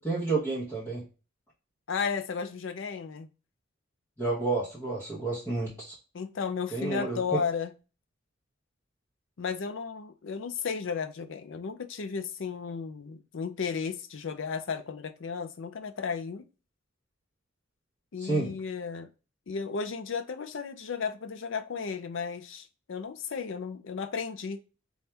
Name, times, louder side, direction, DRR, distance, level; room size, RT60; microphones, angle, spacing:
voice 1, 0.0-1.0 4.2-5.9 6.7-7.4 18.2-18.5, right 3 dB, 10° left, 0.9 m, -30 dB
voice 2, 1.9-3.3 6.1-7.7 9.4-16.4 18.1-19.1 19.5-24.6, left 5 dB, 65° left, 0.5 m, -34 dB
4.2 x 2.4 x 3.3 m
head